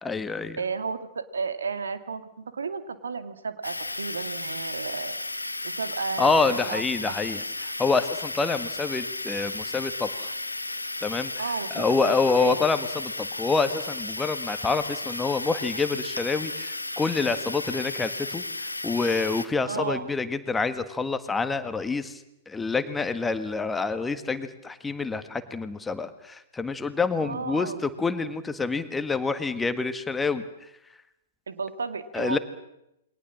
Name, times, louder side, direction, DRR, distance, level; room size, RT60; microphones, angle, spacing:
voice 1, 0.0-0.6 6.2-10.3 11.0-11.3 11.7-22.2 22.5-30.4 32.1-32.4, left 4 dB, 10° left, 10 dB, 1.6 m, -27 dB
voice 2, 0.6-5.2 5.6-7.1 11.4-12.6 19.7-20.1 27.2-27.8 31.5-32.4, right 5 dB, 65° right, 10 dB, 2.2 m, -33 dB
sound 1, 3.6-19.5, left 2 dB, 80° left, 1.5 m, -34 dB
28.5 x 23.0 x 7.5 m, 0.85 s
figure-of-eight pair, 105°, 0 cm